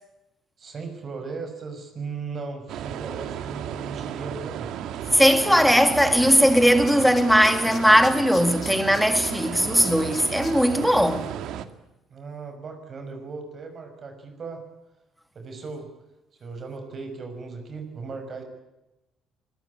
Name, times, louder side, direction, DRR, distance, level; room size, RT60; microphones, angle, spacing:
voice 1, 0.6-4.7 12.1-14.6 15.3-15.9 16.4-18.4, right 4 dB, 35° right, 6.1 m, -37 dB
sound 1, 2.7-11.7, right 10 dB, 70° right, 2.1 m, -34 dB
Tools, 5.1-5.2 5.4-6.6 6.9-10.5 10.9-11.0, left 6 dB, 30° left, 7.1 m, -41 dB
voice 2, 5.1-11.3, equal, ahead, 2.5 m, -19 dB
25.0 x 21.5 x 8.7 m
cardioid pair, 145°, 0 cm